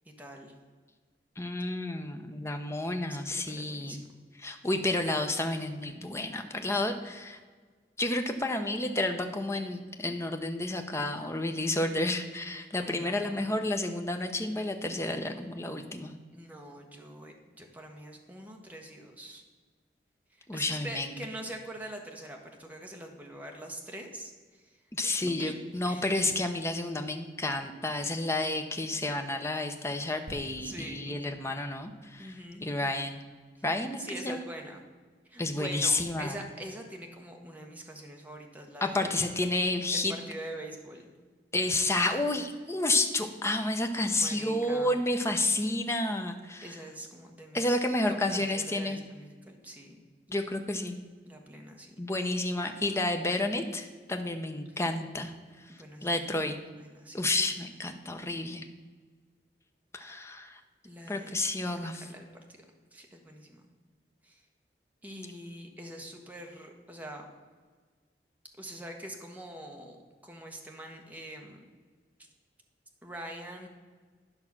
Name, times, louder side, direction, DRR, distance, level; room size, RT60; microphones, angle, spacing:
voice 1, 0.2-0.5 2.6-4.1 12.7-13.5 16.3-19.4 20.4-24.3 24.6-25.5 25.8-26.3 30.6-31.2 32.2-32.6 34.0-34.8 35.2-39.3 39.9-41.1 44.0-45.0 46.6-47.7 48.3-50.0 51.2-51.9 55.8-56.5 56.7-57.2 60.8-61.3 61.7-62.3 62.9-63.6 64.2-64.4 65.0-67.2 68.6-71.6 73.0-73.7, right 1 dB, 10° right, 1 dB, 1.3 m, -44 dB
voice 2, 1.4-4.0 4.4-7.4 8.0-16.1 20.5-21.1 25.0-33.2 33.6-34.4 35.4-36.3 38.8-40.1 41.5-46.7 47.5-49.0 50.3-51.0 52.0-55.3 56.0-56.6 57.1-58.6 59.9-60.6 61.1-62.0, left 2 dB, 15° left, 5 dB, 0.8 m, -30 dB
sound 1, 30.3-33.9 34.5-34.6, equal, 80° right, 3.0 m, -51 dB
11.0 x 5.6 x 6.0 m, 1.5 s
head